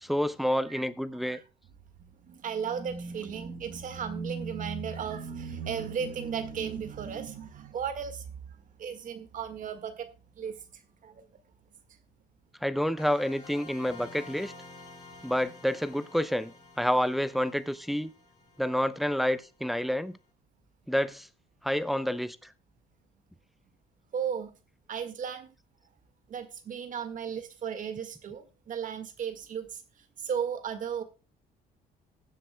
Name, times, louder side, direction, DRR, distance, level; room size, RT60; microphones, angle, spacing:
voice 1, 0.0-1.4 12.6-14.5 15.2-18.1 18.6-20.2 20.9-21.3 21.6-22.5, equal, ahead, 0.6 m, -29 dB
voice 2, 2.2-10.1 10.4-10.6 11.0-11.3 24.1-24.5 24.9-25.5 26.3-29.8 30.2-31.0, right 7 dB, 50° right, 1.8 m, -35 dB
sound 1, 13.0-19.6, left 2 dB, 25° left, 4.4 m, -50 dB
20.0 x 7.6 x 2.2 m
cardioid pair, 110°, 17 cm